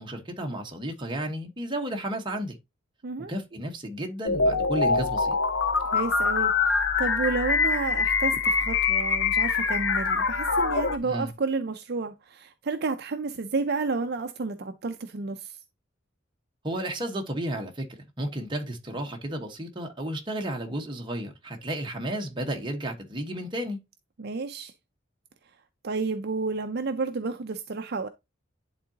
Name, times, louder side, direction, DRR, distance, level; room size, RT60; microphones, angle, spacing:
voice 1, 0.0-2.6 3.3-5.3 11.0-11.3 16.6-17.9 18.2-23.8, right 1 dB, 25° right, 1.3 m, -32 dB
sound 1, 4.2-11.0, left 4 dB, 70° left, 0.8 m, -24 dB
voice 2, 5.8-15.6 24.2-24.7 25.8-28.1, right 4 dB, 55° right, 0.5 m, -31 dB
10.5 x 3.7 x 2.8 m
head